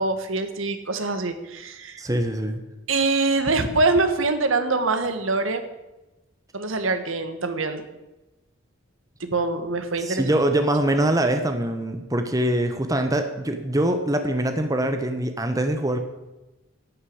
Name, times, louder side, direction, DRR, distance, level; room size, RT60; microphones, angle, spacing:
voice 1, 0.0-2.0 2.9-5.6 6.5-7.9 9.2-10.3, right 3 dB, 75° right, 8 dB, 1.5 m, -24 dB
voice 2, 2.0-2.6 10.0-16.0, right 1 dB, 15° right, 7 dB, 1.0 m, -23 dB
11.5 x 8.3 x 8.6 m, 1.0 s
head